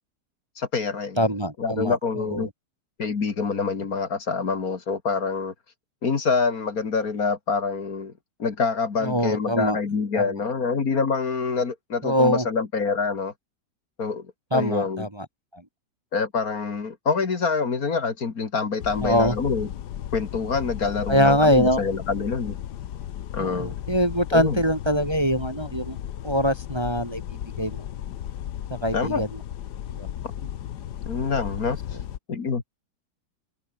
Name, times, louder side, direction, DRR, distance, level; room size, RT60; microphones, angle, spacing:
voice 1, 0.6-1.2 1.6-2.5 3.0-5.5 6.0-8.1 8.4-13.3 14.0-15.1 16.1-19.7 20.1-22.6 23.3-23.8 24.3-24.6 28.9-29.2 30.4-30.5 31.1-31.8 32.3-32.7, left 5 dB, 55° left, 2.5 m, -26 dB
voice 2, 1.2-2.5 9.0-9.8 10.1-10.3 12.0-12.5 14.5-15.3 15.5-15.6 19.0-19.4 21.1-21.8 23.4-26.0 26.2-27.9 28.7-29.3 30.0-30.1, equal, 15° right, 1.8 m, -23 dB
sound 1, 18.8-32.2, left 11 dB, 70° left, 1.5 m, -35 dB
omnidirectional pair, 1.9 m